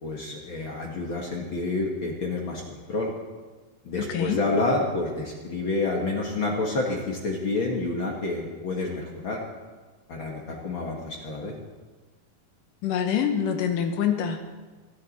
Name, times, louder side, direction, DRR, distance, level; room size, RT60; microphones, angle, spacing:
voice 1, 0.0-3.1 3.8-9.4 10.1-11.5, left 2 dB, 50° left, 0 dB, 1.7 m, -28 dB
voice 2, 4.0-4.4 12.8-14.4, left 8 dB, 75° left, 6 dB, 2.5 m, -25 dB
23.0 x 10.5 x 4.2 m, 1.3 s
omnidirectional pair, 4.0 m